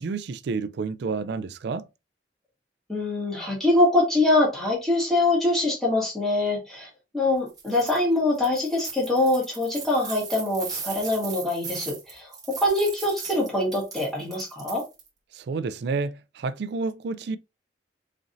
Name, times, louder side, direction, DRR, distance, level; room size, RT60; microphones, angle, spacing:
voice 1, 0.0-1.9 15.3-17.4, right 4 dB, 65° right, 0.4 m, -30 dB
voice 2, 2.9-6.9 7.1-14.8, left 2 dB, ahead, 1.8 m, -24 dB
sound 1, 7.5-8.0 8.3-15.1, right 5 dB, 20° right, 1.4 m, -38 dB
4.3 x 3.8 x 2.6 m
head